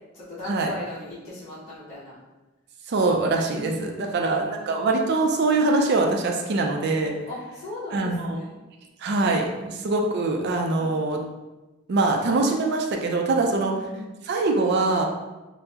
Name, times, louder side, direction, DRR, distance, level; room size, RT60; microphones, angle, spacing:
voice 1, 0.1-2.2 3.5-5.2 7.3-8.6 9.5-9.7 10.7-11.0 13.4-14.1, left 2 dB, 35° left, -13 dB, 0.8 m, -39 dB
voice 2, 2.9-7.1 7.9-8.4 9.0-11.2 11.9-13.7 14.2-15.0, right 3 dB, 55° right, 2 dB, 0.4 m, -23 dB
3.5 x 2.0 x 2.8 m, 1.1 s
head